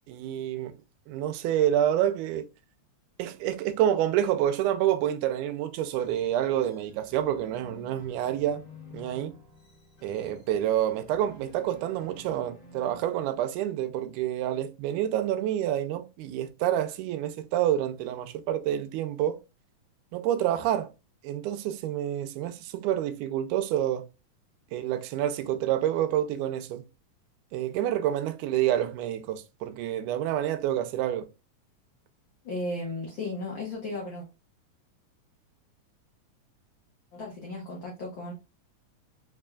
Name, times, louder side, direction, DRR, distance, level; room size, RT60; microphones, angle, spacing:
voice 1, 0.1-0.7 1.1-2.5 3.2-8.6 8.9-9.4 10.0-19.4 20.1-20.9 21.2-24.1 24.7-26.8 27.5-31.3, right 11 dB, 85° right, 2.1 m, -28 dB
sound 1, 6.0-13.6, left 2 dB, 45° left, 2.0 m, -51 dB
voice 2, 32.4-34.2 37.1-38.3, left 2 dB, 75° left, 1.1 m, -35 dB
4.8 x 3.4 x 2.2 m
omnidirectional pair, 3.5 m